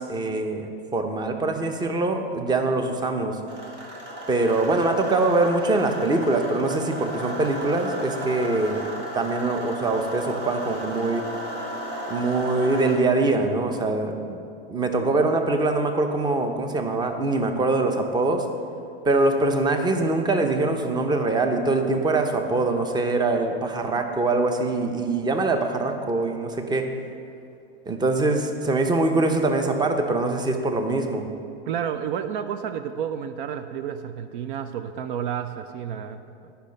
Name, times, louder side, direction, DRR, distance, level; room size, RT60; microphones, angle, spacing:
voice 1, 0.0-3.4 4.3-8.9 9.1-11.3 12.1-14.4 14.7-18.5 19.1-26.9 27.9-31.3, right 2 dB, 15° right, 5 dB, 0.7 m, -23 dB
sound 1, 3.5-13.0, equal, 35° right, 1.9 m, -34 dB
voice 2, 31.7-36.5, right 8 dB, 60° right, 10 dB, 0.5 m, -31 dB
10.5 x 5.7 x 5.2 m, 2.5 s
hypercardioid pair, 115°, 30 cm